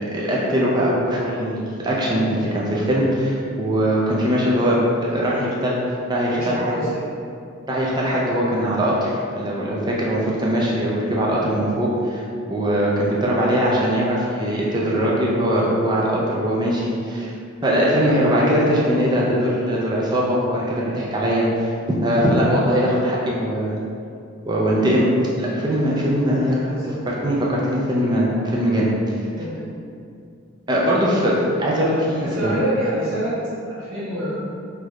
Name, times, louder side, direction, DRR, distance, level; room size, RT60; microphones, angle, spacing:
voice 1, 0.0-4.8 5.1-5.8 6.1-6.7 7.7-12.2 12.5-17.3 17.6-23.8 24.5-25.1 25.4-26.8 27.1-28.9 30.7-32.5, equal, 20° right, -5 dB, 0.4 m, -21 dB
voice 2, 5.1-5.5 6.3-6.9 14.8-15.2 26.7-26.9 29.3-29.6 32.2-33.4 33.7-34.4, right 1 dB, 90° right, -9 dB, 0.7 m, -27 dB
3.3 x 2.4 x 3.1 m, 2.5 s
head